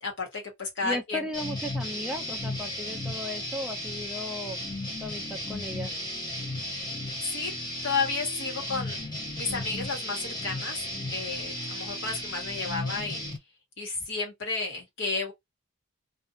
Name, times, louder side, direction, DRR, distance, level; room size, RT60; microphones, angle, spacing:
voice 1, 0.0-1.3 7.2-7.5 7.8-9.0 9.4-10.8 11.1-13.2 13.8-15.3, left 4 dB, 55° left, 1.3 m, -32 dB
voice 2, 0.8-4.6 5.0-5.9, left 1 dB, 5° right, 0.3 m, -36 dB
sound 1, 1.3-13.4, left 1 dB, 20° left, 1.0 m, -35 dB
2.6 x 2.4 x 2.5 m
head